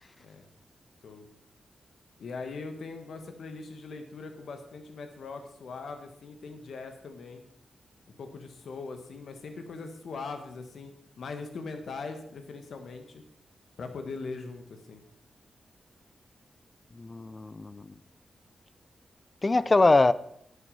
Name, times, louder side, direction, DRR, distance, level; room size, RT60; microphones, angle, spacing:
voice 1, 2.2-7.4 8.2-10.9 11.2-13.2 13.8-15.0, left 4 dB, 75° left, 1.5 m, -40 dB
voice 2, 16.9-17.9 19.4-20.1, left 3 dB, 35° left, 0.6 m, -23 dB
10.0 x 8.3 x 5.6 m
cardioid pair, 55°, 0 cm